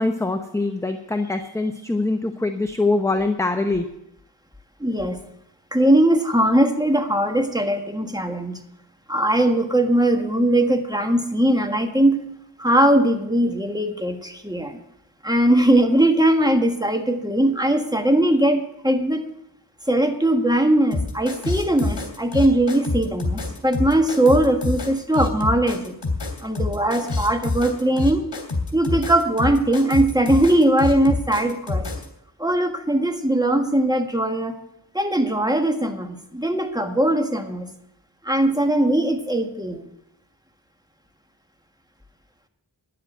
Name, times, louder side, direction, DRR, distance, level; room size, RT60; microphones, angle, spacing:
voice 1, 0.0-3.9, left 2 dB, 5° left, 6 dB, 0.8 m, -23 dB
voice 2, 4.8-5.2 5.7-8.6 9.1-12.2 12.6-14.8 15.2-19.2 19.9-25.9 26.4-28.2 28.7-31.9 32.4-34.5 34.9-37.7 38.2-39.9, right 1 dB, 10° right, 5 dB, 1.5 m, -20 dB
sound 1, 20.9-32.1, left 3 dB, 65° left, 3.1 m, -26 dB
10.5 x 7.8 x 7.8 m, 0.81 s
wide cardioid pair, 45°, 45 cm